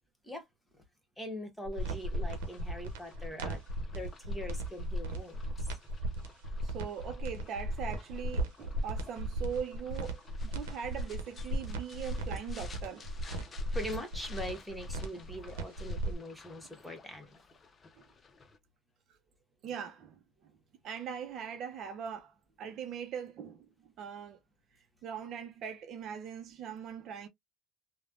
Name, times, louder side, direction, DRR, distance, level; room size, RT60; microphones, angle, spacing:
voice 1, 1.2-3.6 3.9-5.4 13.7-17.4, equal, 5° left, 1.2 m, -42 dB
sound 1, 1.6-16.1, right 1 dB, 85° right, 0.8 m, -36 dB
sound 2, 1.7-18.6, left 4 dB, 30° left, 0.6 m, -56 dB
voice 2, 6.6-13.1 18.0-18.1 19.6-20.5 20.8-24.4 25.0-27.3, right 7 dB, 55° right, 0.6 m, -41 dB
3.1 x 2.1 x 2.4 m
supercardioid pair, 85°, 0 cm